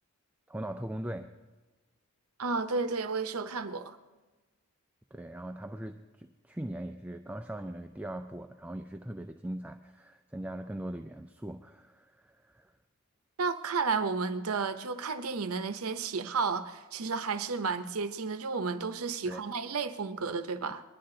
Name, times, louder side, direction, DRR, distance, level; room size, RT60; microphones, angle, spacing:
voice 1, 0.5-1.3 5.1-12.7 19.2-19.4, right 1 dB, 5° right, 6 dB, 0.4 m, -40 dB
voice 2, 2.4-4.0 13.4-20.8, right 4 dB, 80° right, 10 dB, 0.7 m, -32 dB
20.5 x 11.5 x 3.8 m, 1.3 s
head